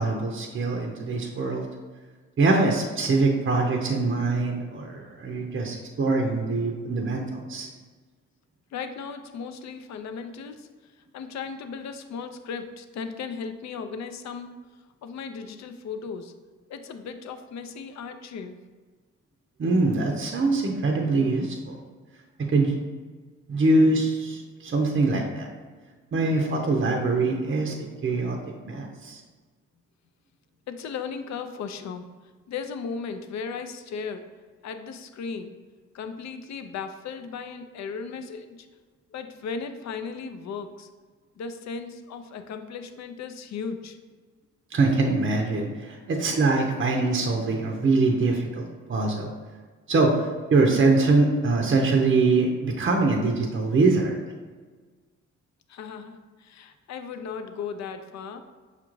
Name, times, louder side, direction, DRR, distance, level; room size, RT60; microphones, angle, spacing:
voice 1, 0.0-1.7 2.4-7.7 19.6-21.8 22.4-22.7 23.5-25.5 26.1-29.2 44.7-49.3 49.9-54.2, right 3 dB, 35° right, 2 dB, 0.6 m, -23 dB
voice 2, 8.7-10.7 11.1-14.5 15.0-16.3 16.7-18.6 30.7-32.1 32.5-34.3 34.6-35.5 35.9-38.7 39.1-40.9 41.4-44.0 55.7-58.4, left 5 dB, 55° left, 8 dB, 0.5 m, -36 dB
5.6 x 2.4 x 3.0 m, 1.4 s
supercardioid pair, 45°, 33 cm